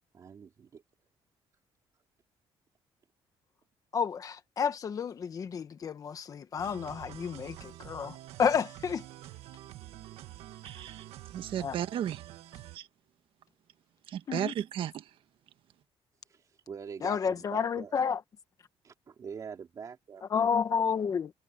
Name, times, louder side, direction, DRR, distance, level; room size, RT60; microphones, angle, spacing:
voice 1, 0.1-0.8 14.2-14.4 16.2-18.0 18.8-20.6, right 6 dB, 35° right, 3.2 m, -45 dB
voice 2, 3.9-9.0 11.6-11.8 14.3-14.5 17.0-18.2 20.3-21.3, left 7 dB, 35° left, 1.3 m, -30 dB
sound 1, 6.6-12.8, right 14 dB, 80° right, 1.4 m, -47 dB
voice 3, 10.6-11.0 11.3-12.2 12.7-12.8 14.1-14.9, right 10 dB, 55° right, 1.5 m, -34 dB
cardioid pair, 165°, 10 cm